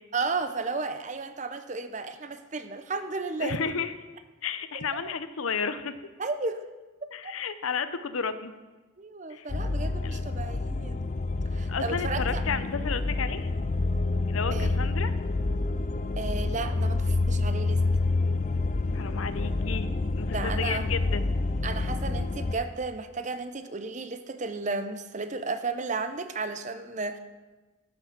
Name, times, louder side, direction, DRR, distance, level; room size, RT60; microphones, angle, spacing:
voice 1, 0.1-3.6 4.7-5.1 6.2-6.7 7.2-7.4 9.0-11.1 11.5-12.4 14.5-14.7 16.2-17.8 20.3-20.8 21.6-27.2, right 3 dB, 35° right, 9 dB, 0.7 m, -33 dB
voice 2, 3.4-3.9 4.4-6.0 7.1-8.5 9.3-9.5 10.0-10.2 11.7-13.5 14.3-15.1 18.9-19.9 20.1-21.2, left 5 dB, 80° left, 12 dB, 0.7 m, -32 dB
sound 1, 9.5-22.5, left 3 dB, 35° left, 0.4 m, -28 dB
12.0 x 6.7 x 6.0 m, 1.2 s
head